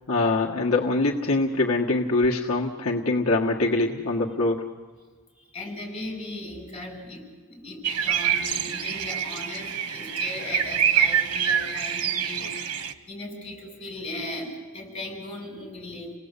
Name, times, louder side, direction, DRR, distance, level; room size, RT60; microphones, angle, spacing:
voice 1, 0.1-4.6, left 2 dB, 65° left, -2 dB, 1.6 m, -23 dB
voice 2, 5.5-12.5 13.1-16.1, left 2 dB, 25° left, 0 dB, 7.5 m, -37 dB
sound 1, 7.8-12.9, right 8 dB, 90° right, 1.3 m, -26 dB
28.5 x 18.5 x 8.3 m, 1.5 s
head